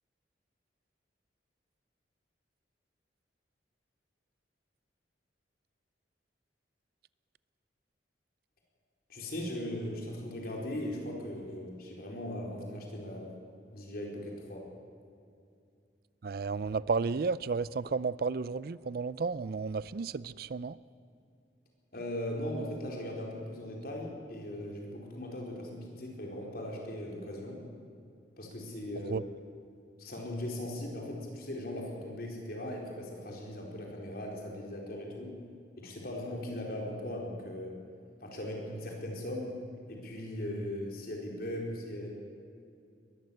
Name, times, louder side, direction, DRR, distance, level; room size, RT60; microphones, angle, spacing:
voice 1, 9.1-13.4 13.7-14.7 21.9-27.6 28.4-29.3 30.0-35.3 35.8-37.7 38.2-39.5 39.9-42.1, left 1 dB, 55° left, 0 dB, 4.4 m, -39 dB
voice 2, 16.2-20.8 29.1-29.2, right 4 dB, 55° right, 19 dB, 0.4 m, -32 dB
21.0 x 14.5 x 8.8 m, 2.5 s
head